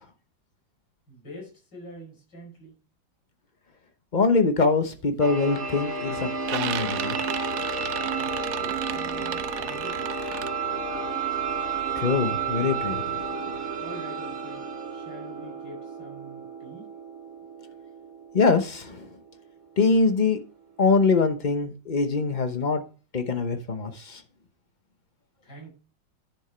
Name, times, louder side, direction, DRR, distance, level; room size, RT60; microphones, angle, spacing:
voice 1, 1.1-2.8 8.6-10.2 13.7-16.9 25.4-25.7, equal, 60° left, 6.1 m, -45 dB
voice 2, 4.1-7.2 12.0-13.3 18.3-19.1 19.8-20.4 20.8-22.8 23.1-24.2, left 4 dB, 40° left, 0.7 m, -23 dB
sound 1, 4.7-5.0 5.4-5.9 6.2-10.5, right 12 dB, 70° right, 1.0 m, -34 dB
sound 2, 5.2-20.8, right 4 dB, 45° right, 1.8 m, -32 dB
10.5 x 6.3 x 4.4 m
omnidirectional pair, 2.1 m